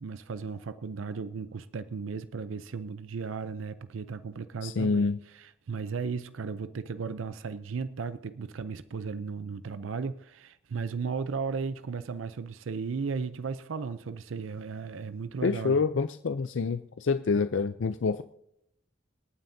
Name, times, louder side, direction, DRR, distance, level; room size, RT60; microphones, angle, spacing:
voice 1, 0.0-15.8, right 5 dB, 90° right, 13 dB, 0.5 m, -35 dB
voice 2, 4.6-5.2 15.4-18.2, left 4 dB, 75° left, 11 dB, 0.5 m, -27 dB
26.5 x 9.2 x 2.7 m, 0.73 s
head